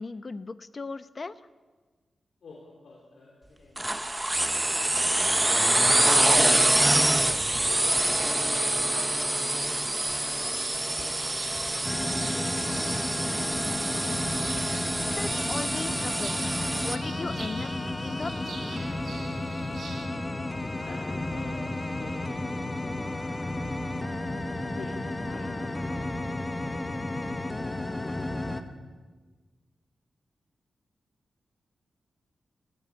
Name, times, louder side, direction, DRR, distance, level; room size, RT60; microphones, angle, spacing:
voice 1, 0.0-1.4 15.0-16.4 16.8-17.7 18.0-18.5, left 3 dB, 35° left, 13 dB, 0.8 m, -37 dB
voice 2, 2.4-6.9 7.3-11.7 20.8-24.3 24.7-28.0, left 3 dB, 75° left, -3 dB, 3.7 m, -51 dB
sound 1, 3.8-17.0, right 1 dB, 15° right, 0.8 m, -25 dB
sound 2, 10.5-20.1, right 5 dB, 75° right, 3.3 m, -45 dB
sound 3, 11.8-28.6, left 2 dB, 20° left, 1.3 m, -32 dB
19.0 x 16.0 x 8.6 m, 1.4 s
wide cardioid pair, 125°, 0 cm